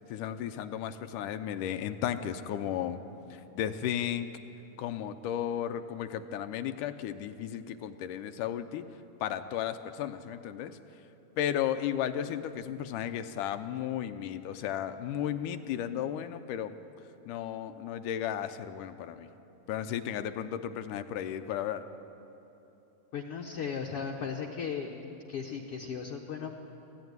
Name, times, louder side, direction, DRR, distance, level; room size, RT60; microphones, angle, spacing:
voice 1, 0.1-3.0 3.3-4.3 4.8-8.9 9.2-10.8 11.4-16.8 17.3-19.3 19.7-21.8, left 10 dB, 80° left, 10 dB, 2.3 m, -34 dB
voice 2, 23.1-26.5, left 6 dB, 60° left, 0 dB, 1.7 m, -36 dB
25.5 x 15.0 x 9.6 m, 3.0 s
omnidirectional pair, 3.8 m